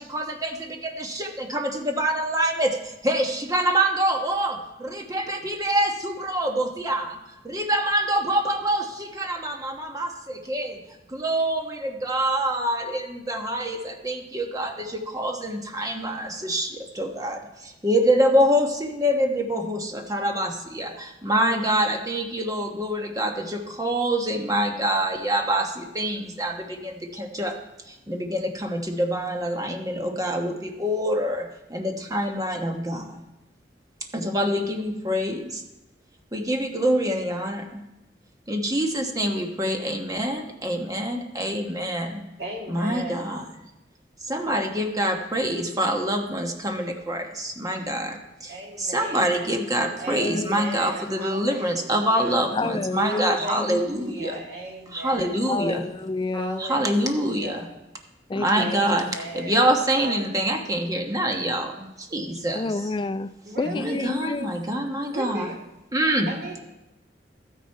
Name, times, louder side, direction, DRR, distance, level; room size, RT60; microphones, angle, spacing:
voice 1, 0.0-7.2 7.4-27.6 27.8-33.2 34.1-35.6 36.3-37.8 38.5-42.2 42.7-43.4 44.2-54.4 54.9-55.9 56.6-57.7 58.3-59.1 59.3-62.7 63.7-65.5 65.9-66.3, right 1 dB, 20° right, 1.1 m, -26 dB
voice 2, 42.4-43.4 48.5-49.5 50.0-52.4 53.0-55.4 56.3-57.7 58.5-59.7 60.0-60.4 63.4-64.0 65.1-65.6 66.3-66.6, right 1 dB, 65° right, 2.3 m, -37 dB
voice 3, 50.1-50.6 52.5-53.8 55.4-56.6 58.3-59.2 62.5-63.3 63.6-64.5, left 3 dB, 25° left, 0.4 m, -29 dB
13.0 x 9.5 x 4.5 m
head